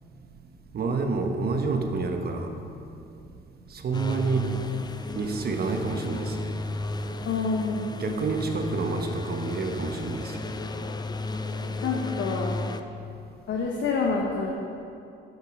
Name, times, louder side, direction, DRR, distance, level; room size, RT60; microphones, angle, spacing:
voice 1, 0.7-2.5 3.8-4.5 5.1-6.5 8.0-10.4, right 4 dB, 50° right, 5 dB, 1.1 m, -28 dB
sound 1, 3.9-12.8, left 2 dB, 20° left, 0.5 m, -34 dB
voice 2, 7.2-7.8 11.8-12.6 13.5-14.5, left 4 dB, 75° left, -1 dB, 1.0 m, -27 dB
9.9 x 6.4 x 5.4 m, 2.6 s
cardioid pair, 90°, 20 cm